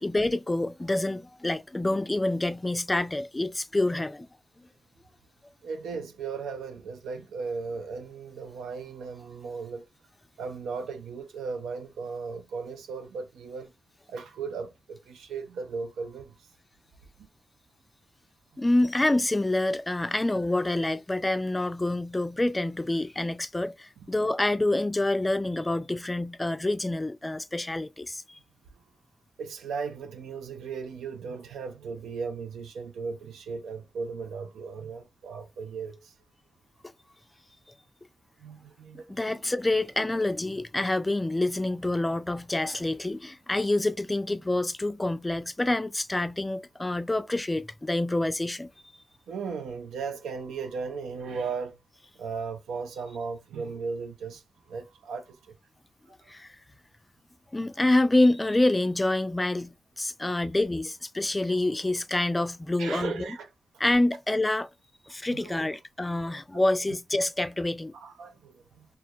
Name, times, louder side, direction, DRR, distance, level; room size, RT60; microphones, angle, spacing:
voice 1, 0.0-4.3 18.6-28.4 39.1-48.7 56.3-56.6 57.5-63.3 63.8-64.7 65.1-67.9, left 2 dB, 20° left, 0.3 m, -27 dB
voice 2, 5.6-9.9 10.4-13.7 14.1-16.4 17.2-17.3 29.4-36.1 38.4-39.5 49.3-51.8 52.2-54.4 54.7-55.5 62.8-63.5 65.3-65.8 67.9-68.9, right 5 dB, 90° right, 0.4 m, -36 dB
2.2 x 2.1 x 2.7 m
cardioid pair, 50°, 0 cm